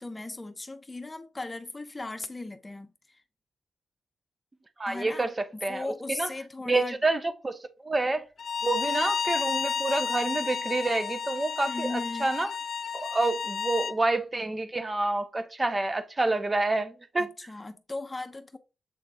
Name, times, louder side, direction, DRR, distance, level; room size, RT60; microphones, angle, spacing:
voice 1, 0.0-3.2 4.9-7.0 11.7-12.3 17.2-18.6, left 2 dB, 20° left, 1.0 m, -37 dB
voice 2, 4.8-5.3 5.6-6.3 6.6-8.2 8.6-12.5 12.9-17.3, right 2 dB, 25° right, 1.1 m, -28 dB
Bowed string instrument, 8.4-14.0, left 6 dB, 65° left, 0.3 m, -31 dB
7.8 x 3.8 x 3.7 m
cardioid pair, 85°, 0 cm